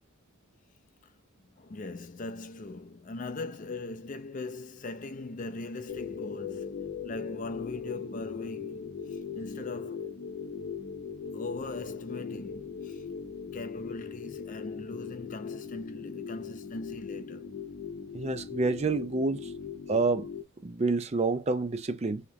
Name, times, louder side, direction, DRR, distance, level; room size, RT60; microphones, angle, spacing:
voice 1, 1.4-10.2 11.3-13.1 13.5-17.5, left 2 dB, 35° left, 0.4 m, -40 dB
sound 1, 5.9-20.4, left 6 dB, 65° left, 0.8 m, -39 dB
voice 2, 18.1-19.5 19.9-20.3 20.6-22.2, right 3 dB, 30° right, 0.4 m, -28 dB
3.0 x 2.9 x 3.7 m
head